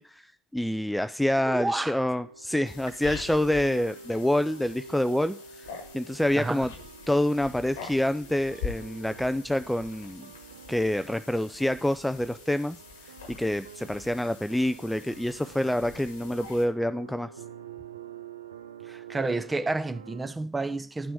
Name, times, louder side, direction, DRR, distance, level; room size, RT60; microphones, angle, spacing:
voice 1, 0.0-5.4 5.9-6.7 7.1-10.3 10.7-12.8 13.3-17.3, left 1 dB, 5° left, 0.4 m, -27 dB
voice 2, 1.5-1.9 6.4-6.7 18.9-21.1, right 3 dB, 20° right, 0.9 m, -30 dB
sound 1, 1.7-20.3, right 6 dB, 85° right, 0.4 m, -48 dB
sound 2, 2.6-16.7, left 5 dB, 80° left, 1.3 m, -44 dB
11.0 x 6.0 x 4.7 m
figure-of-eight pair, 50°, 0 cm